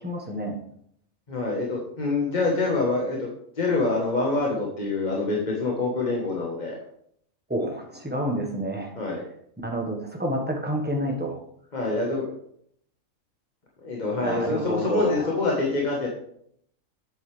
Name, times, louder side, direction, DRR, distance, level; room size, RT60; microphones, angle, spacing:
voice 1, 0.0-0.6 7.5-8.9 9.6-11.4 14.1-15.3, right 1 dB, 10° right, 0 dB, 1.3 m, -28 dB
voice 2, 1.3-3.3 3.6-6.7 9.0-9.2 11.7-12.3 13.8-16.1, left 3 dB, 35° left, -3 dB, 1.4 m, -26 dB
8.1 x 8.0 x 3.4 m, 0.67 s
omnidirectional pair, 1.4 m